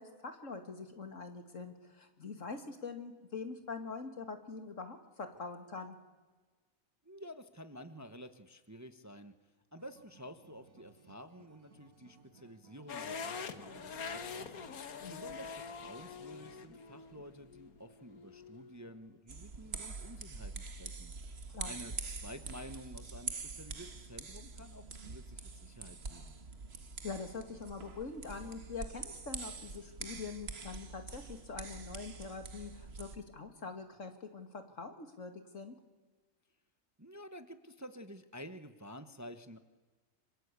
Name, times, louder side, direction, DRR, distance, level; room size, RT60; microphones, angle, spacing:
voice 1, 0.0-6.0 15.0-15.2 21.5-21.7 27.0-35.7, left 4 dB, 60° left, 7 dB, 2.6 m, -44 dB
voice 2, 7.0-9.3 9.7-21.1 21.6-26.3 37.0-39.6, equal, 15° right, 9 dB, 1.1 m, -51 dB
Acoustic guitar, 9.8-14.9, right 4 dB, 80° right, 2.2 m, -62 dB
sound 1, 12.9-19.0, left 5 dB, 90° left, 1.8 m, -45 dB
sound 2, 19.3-33.2, right 4 dB, 45° right, 1.7 m, -45 dB
26.5 x 26.5 x 8.4 m, 1.3 s
omnidirectional pair, 1.5 m